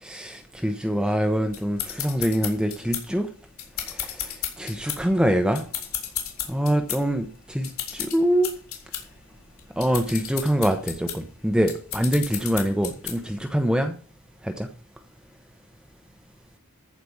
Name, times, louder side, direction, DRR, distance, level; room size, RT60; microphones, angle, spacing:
voice 1, 0.0-3.3 3.9-5.7 6.5-8.5 9.8-13.9 14.4-14.7, equal, 5° right, 5 dB, 0.8 m, -24 dB
sound 1, 1.5-13.4, left 10 dB, 85° left, 3.7 m, -34 dB
14.5 x 5.0 x 7.1 m, 0.41 s
head